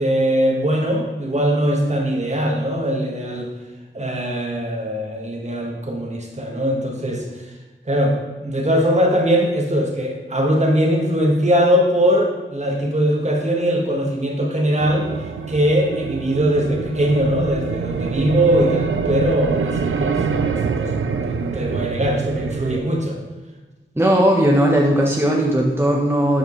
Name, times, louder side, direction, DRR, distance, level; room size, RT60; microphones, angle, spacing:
voice 1, 0.0-3.5 3.9-7.3 7.9-15.1 15.5-23.2, equal, 35° right, 0 dB, 1.7 m, -21 dB
sound 1, 14.8-22.8, right 5 dB, 80° right, 0.6 m, -25 dB
voice 2, 24.0-26.4, right 1 dB, 10° right, -2 dB, 1.3 m, -17 dB
11.0 x 5.0 x 3.3 m, 1.2 s
cardioid pair, 45°, 21 cm